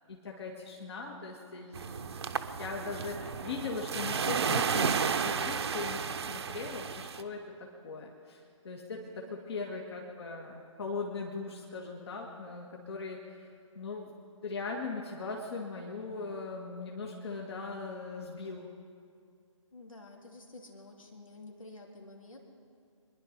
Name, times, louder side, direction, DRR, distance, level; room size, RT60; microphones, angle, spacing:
voice 1, 0.1-2.2 2.6-14.1 14.4-18.7, left 4 dB, 50° left, 0 dB, 2.0 m, -40 dB
sound 1, 1.7-7.2, right 6 dB, 55° right, 0.9 m, -32 dB
voice 2, 8.9-9.8 19.7-22.4, left 2 dB, 80° left, 1 dB, 2.9 m, -51 dB
25.0 x 11.0 x 5.3 m, 2.3 s
figure-of-eight pair, 140°, 17 cm